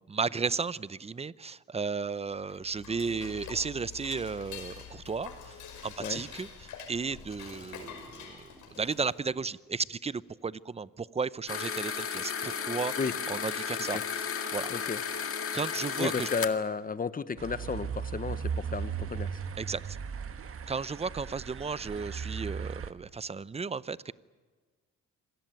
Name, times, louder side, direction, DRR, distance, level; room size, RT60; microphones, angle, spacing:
voice 1, 0.0-5.6 5.8-12.9 13.3-14.7 15.5-16.3 19.6-19.8 20.7-24.1, right 5 dB, 20° right, 18 dB, 0.7 m, -34 dB
Dishes pots and pans / Cutlery silverware, 2.4-9.3, left 7 dB, 80° left, 5.6 m, -46 dB
sound 1, 11.5-16.5, left 7 dB, 50° left, 1.9 m, -34 dB
voice 2, 16.0-19.3, left 5 dB, 30° left, 14 dB, 1.1 m, -33 dB
sound 2, 17.4-22.9, right 7 dB, 50° right, 1.4 m, -37 dB
26.5 x 18.5 x 9.2 m, 1.4 s
cardioid pair, 90°, 30 cm